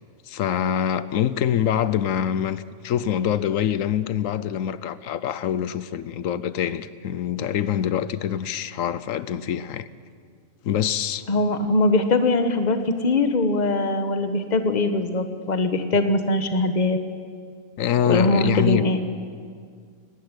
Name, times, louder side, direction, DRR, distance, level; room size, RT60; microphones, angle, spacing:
voice 1, 0.3-9.9 10.6-11.3 17.8-18.9, left 9 dB, 75° left, 1.1 m, -25 dB
voice 2, 11.3-17.0 18.1-19.0, left 2 dB, 35° left, 1.3 m, -21 dB
18.5 x 15.0 x 9.7 m
omnidirectional pair, 1.4 m